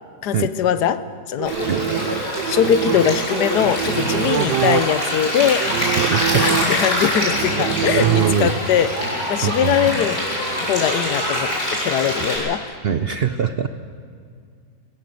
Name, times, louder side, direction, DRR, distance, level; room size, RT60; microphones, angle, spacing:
voice 1, 0.2-1.6 2.5-5.7 6.3-10.2 10.6-12.6, left 9 dB, 80° left, 14 dB, 1.4 m, -21 dB
sound 1, 1.4-8.9, right 11 dB, 90° right, 1.3 m, -25 dB
Stream, 1.5-12.4, equal, 60° left, 7.8 m, -24 dB
voice 2, 5.9-6.5 7.9-8.6 9.4-9.8 12.8-13.7, right 8 dB, 55° right, 10 dB, 0.7 m, -22 dB
21.0 x 16.5 x 7.7 m, 2.1 s
omnidirectional pair, 1.7 m